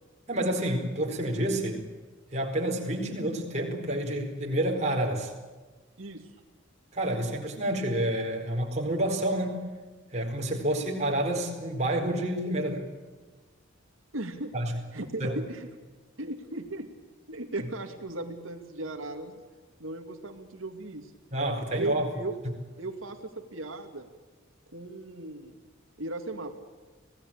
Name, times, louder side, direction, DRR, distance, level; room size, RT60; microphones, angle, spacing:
voice 1, 0.3-1.8 2.3-5.3 6.9-9.6 10.1-12.9 14.5-14.8 15.2-15.3 21.3-22.1, right 1 dB, 35° right, 1 dB, 4.4 m, -29 dB
voice 2, 6.0-6.3 14.1-14.5 14.9-15.7 16.2-16.9 17.3-19.4 19.8-21.1 21.7-22.3 22.8-24.1 24.7-25.6 26.0-26.5, right 2 dB, 90° right, 4 dB, 2.4 m, -36 dB
26.0 x 18.0 x 8.8 m, 1.3 s
head